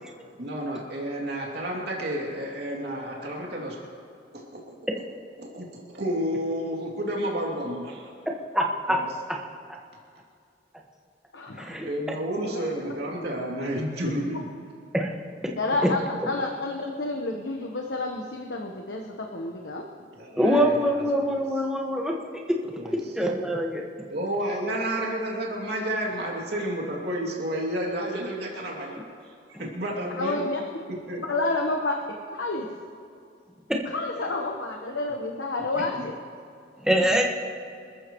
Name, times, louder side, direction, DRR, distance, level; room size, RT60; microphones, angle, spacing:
voice 1, 0.4-3.7 4.5-4.6 5.4-8.1 8.9-9.0 11.8-14.4 20.2-21.0 21.3-21.4 22.8-23.0 24.1-29.0 29.5-30.5 31.1-31.2 35.7-36.1 37.0-37.1, right 1 dB, 65° right, -3 dB, 2.7 m, -31 dB
voice 2, 8.5-9.0 11.6-11.9 14.9-15.5 20.4-22.1 23.1-23.8 36.8-37.2, equal, 5° right, -1 dB, 1.5 m, -24 dB
voice 3, 11.3-11.8 12.4-12.7 14.1-14.2 15.6-19.8 30.2-30.6 31.3-32.7 33.8-36.2, left 2 dB, 85° left, 1 dB, 1.2 m, -29 dB
27.0 x 14.0 x 3.1 m, 2.4 s
head